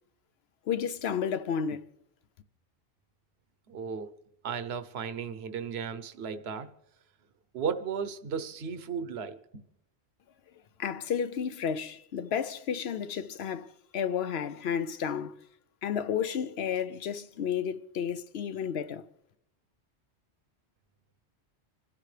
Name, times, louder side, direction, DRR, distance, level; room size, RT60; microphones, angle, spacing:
voice 1, 0.7-1.8 10.8-13.7 13.9-15.4 15.8-19.0, left 7 dB, 65° left, 0.9 m, -32 dB
voice 2, 3.7-4.1 4.4-6.7 7.5-9.6, right 6 dB, 65° right, 1.1 m, -35 dB
27.0 x 12.5 x 3.3 m
omnidirectional pair, 1.2 m